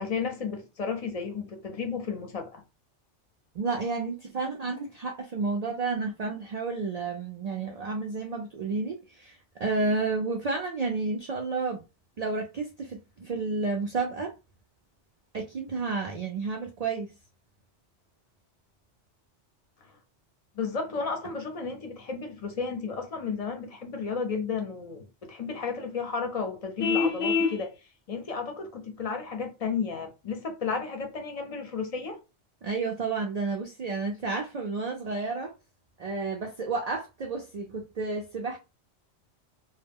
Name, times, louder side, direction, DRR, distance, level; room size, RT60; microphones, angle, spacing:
voice 1, 0.0-2.6 20.6-27.7 28.1-32.2, left 5 dB, 45° left, 0.5 m, -33 dB
voice 2, 3.5-11.8 12.2-14.3 15.3-17.1 32.6-35.5 36.0-38.6, right 3 dB, 70° right, 0.3 m, -31 dB
Vehicle horn car horn honking, 26.8-27.6, left 5 dB, 90° left, 0.9 m, -25 dB
2.1 x 2.0 x 3.4 m
omnidirectional pair, 1.2 m